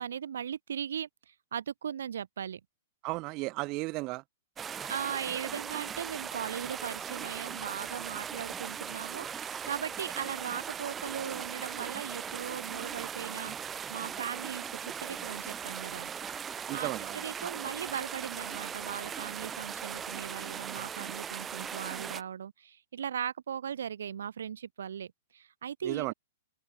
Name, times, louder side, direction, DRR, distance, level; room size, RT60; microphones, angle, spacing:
voice 1, 0.0-2.6 4.9-16.1 16.7-26.1, right 8 dB, 70° right, 3.0 m, -38 dB
voice 2, 3.0-4.2 16.7-17.2 25.8-26.1, right 23 dB, 40° right, 1.9 m, -34 dB
sound 1, 4.6-22.2, right 8 dB, 20° right, 3.1 m, -39 dB
open air
figure-of-eight pair, 110°, 0 cm